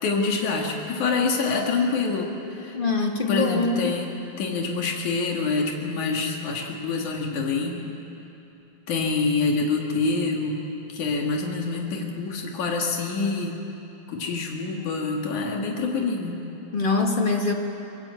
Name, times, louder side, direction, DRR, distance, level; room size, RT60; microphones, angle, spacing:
voice 1, 0.0-2.8 3.3-4.1 4.4-7.8 8.9-13.6 14.1-16.4, left 4 dB, 90° left, 0 dB, 3.4 m, -26 dB
voice 2, 2.7-4.0 16.7-17.5, left 3 dB, 25° left, 2 dB, 1.3 m, -23 dB
24.0 x 21.5 x 8.2 m, 3.0 s
omnidirectional pair, 3.3 m